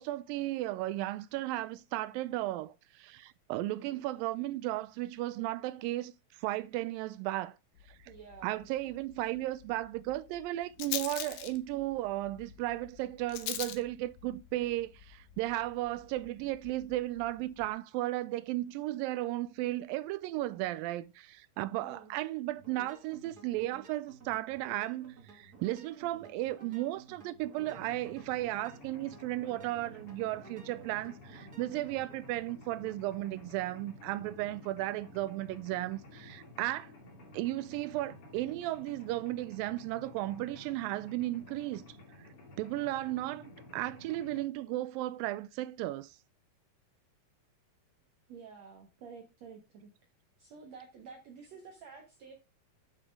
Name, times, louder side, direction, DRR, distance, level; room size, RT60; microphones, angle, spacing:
voice 1, 0.0-6.1 6.4-7.6 8.4-36.9 37.3-41.8 42.6-46.2, right 16 dB, 85° right, 2.3 m, -35 dB
Rattle, 7.8-17.7, left 12 dB, 75° left, 2.5 m, -45 dB
voice 2, 8.1-8.6 21.8-22.1 48.3-49.9 50.4-52.3, right 5 dB, 55° right, 2.4 m, -50 dB
sound 1, 22.6-32.2, right 4 dB, 30° right, 2.4 m, -55 dB
Mechanisms, 27.6-44.4, left 2 dB, 45° left, 3.1 m, -53 dB
9.4 x 6.9 x 3.6 m
omnidirectional pair, 4.0 m